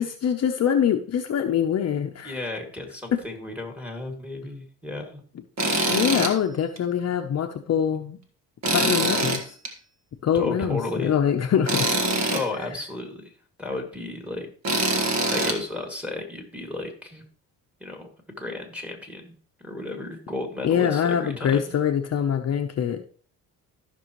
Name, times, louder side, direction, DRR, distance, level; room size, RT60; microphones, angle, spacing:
voice 1, 0.0-2.4 3.1-3.2 5.9-8.2 8.7-9.5 10.2-11.9 20.6-23.0, left 8 dB, 45° left, 5 dB, 0.8 m, -24 dB
voice 2, 2.2-5.2 10.3-11.2 12.3-13.3 13.6-14.5 15.3-17.2 17.8-18.1 18.4-19.3 19.6-21.7, left 2 dB, 5° right, 3 dB, 2.3 m, -33 dB
Tools, 5.6-6.3 6.8-6.9 8.6-9.7 11.7-12.4 14.6-15.6, right 2 dB, 50° right, 1.7 m, -23 dB
14.0 x 6.2 x 3.1 m, 0.43 s
cardioid pair, 105°, 35 cm